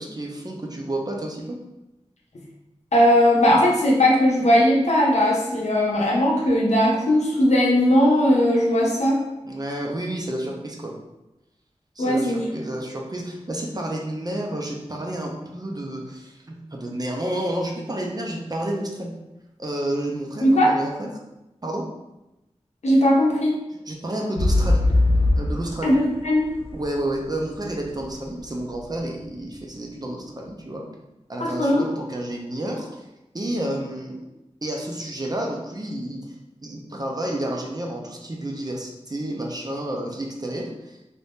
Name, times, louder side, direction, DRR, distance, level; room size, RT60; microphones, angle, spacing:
voice 1, 0.0-1.6 9.4-10.9 12.0-19.1 19.6-21.1 21.6-21.8 23.9-24.8 25.4-25.9 26.7-30.8 31.3-33.0 33.3-34.2 34.6-36.2 36.6-41.0, right 1 dB, 35° right, 0 dB, 0.6 m, -30 dB
voice 2, 2.9-9.2 12.0-12.4 20.4-20.7 22.8-23.6 25.8-26.5 31.4-31.8, equal, 85° left, -3 dB, 0.8 m, -18 dB
sound 1, 24.4-28.2 28.8-28.9, left 2 dB, 55° left, 0.5 m, -21 dB
2.7 x 2.5 x 3.5 m, 0.95 s
wide cardioid pair, 65°, 11 cm